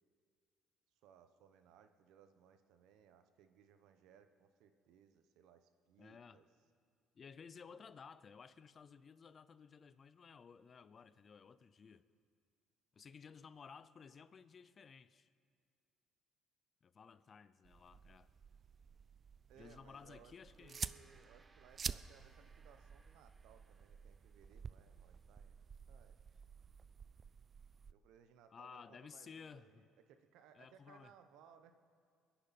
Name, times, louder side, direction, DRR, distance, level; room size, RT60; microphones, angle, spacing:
voice 1, 1.0-6.5 19.5-25.5 25.9-26.2 27.9-31.7, right 8 dB, 80° right, 0.9 m, -65 dB
voice 2, 6.0-6.4 7.2-12.0 12.9-15.3 16.8-18.3 19.6-20.8 28.5-29.8 30.5-31.1, left 6 dB, 40° left, 0.5 m, -56 dB
sound 1, 17.6-27.9, right 6 dB, 40° right, 0.3 m, -50 dB
Gong, 20.4-25.0, right 3 dB, 25° right, 0.7 m, -70 dB
22.5 x 10.0 x 4.2 m
supercardioid pair, 85°, 0 cm